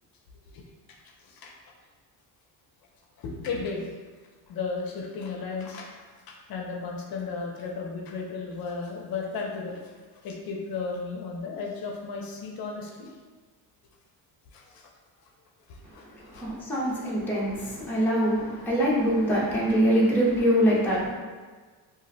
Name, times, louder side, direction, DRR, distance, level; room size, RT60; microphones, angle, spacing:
voice 1, 1.2-1.5 3.2-3.9 4.5-5.9 6.3-9.9 10.2-13.1 14.5-14.9 15.7-16.5, left 4 dB, 60° left, 0 dB, 0.5 m, -35 dB
voice 2, 16.3-21.1, equal, 5° left, -7 dB, 0.5 m, -24 dB
2.4 x 2.0 x 3.9 m, 1.4 s
cardioid pair, 155°, 41 cm